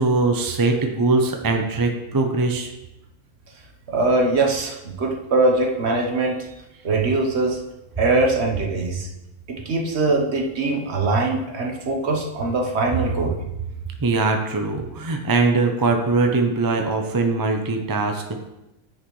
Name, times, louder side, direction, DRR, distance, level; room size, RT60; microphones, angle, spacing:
voice 1, 0.0-2.7 14.0-18.4, right 3 dB, 25° right, 4 dB, 0.5 m, -21 dB
voice 2, 3.9-6.3 6.8-7.6 8.0-9.1 9.5-13.4, right 2 dB, 55° right, 1 dB, 1.3 m, -22 dB
9.9 x 6.3 x 3.2 m, 0.95 s
omnidirectional pair, 1.3 m